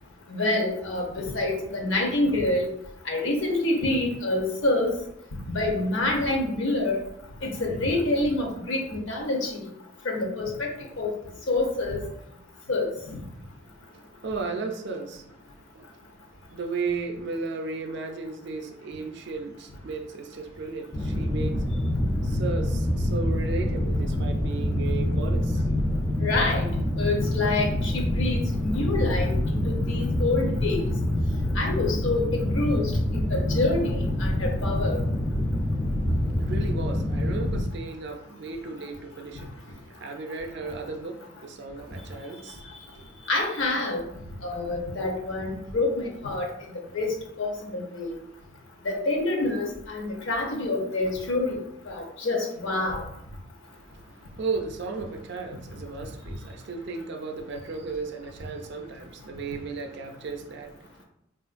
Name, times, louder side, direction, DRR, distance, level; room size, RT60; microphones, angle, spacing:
voice 1, 0.3-2.7 3.1-4.9 5.5-7.0 7.4-9.6 10.0-11.1 11.5-12.0 12.7-13.2 26.2-26.7 27.0-30.9 31.5-35.0 37.5-37.6 43.3-44.0 44.4-46.5 46.9-48.1 48.8-51.6 51.9-53.0, left 2 dB, 65° left, 0.7 m, -27 dB
voice 2, 13.3-25.8 36.1-43.3 53.7-61.0, right 4 dB, 55° right, 0.4 m, -35 dB
sound 1, 20.9-37.6, left 1 dB, 15° left, 0.4 m, -26 dB
3.7 x 2.4 x 2.4 m
head